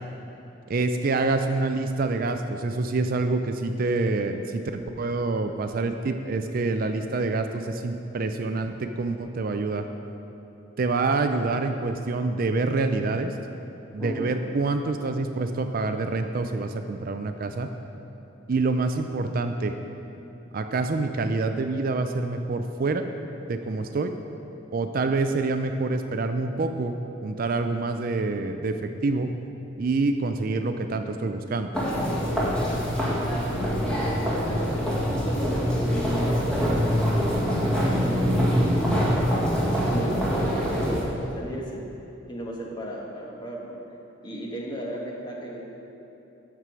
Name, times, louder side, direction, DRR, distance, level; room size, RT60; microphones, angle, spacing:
voice 1, 0.7-4.6 5.0-9.9 10.8-13.3 13.9-17.7 18.5-19.7 20.5-23.0 23.5-24.1 24.7-27.0 27.2-29.3 29.8-31.7, right 3 dB, 50° right, 7 dB, 0.4 m, -26 dB
voice 2, 14.0-14.3 33.5-39.1 39.6-41.8 42.3-43.8 44.2-45.6, right 1 dB, 25° left, -2 dB, 1.2 m, -36 dB
sound 1, 31.7-41.0, equal, 5° left, 1.7 m, -24 dB
12.5 x 4.7 x 6.1 m, 3.0 s
head